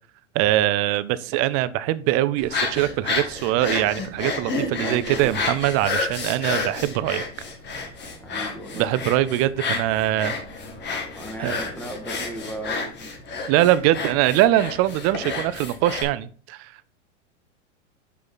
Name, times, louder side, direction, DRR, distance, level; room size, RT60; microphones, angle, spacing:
voice 1, 0.3-7.3 8.7-10.4 11.4-11.6 13.5-16.9, right 14 dB, 40° right, 16 dB, 0.5 m, -22 dB
sound 1, 2.4-16.0, left 3 dB, 30° left, 1.4 m, -30 dB
voice 2, 4.7-5.6 8.2-9.0 11.1-13.1 13.5-14.0, right 1 dB, 5° left, 2 dB, 1.6 m, -37 dB
5.5 x 5.2 x 4.0 m, 0.43 s
hypercardioid pair, 105°, 37 cm